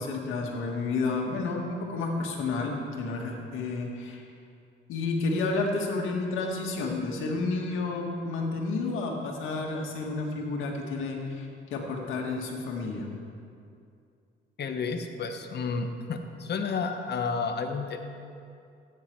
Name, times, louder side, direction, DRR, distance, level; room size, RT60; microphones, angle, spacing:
voice 1, 0.0-4.2 4.9-13.1, left 3 dB, 85° left, 0 dB, 2.0 m, -31 dB
voice 2, 14.6-18.1, left 4 dB, 55° left, 6 dB, 1.3 m, -31 dB
15.0 x 9.6 x 4.7 m, 2.5 s
cardioid pair, 90°, 20 cm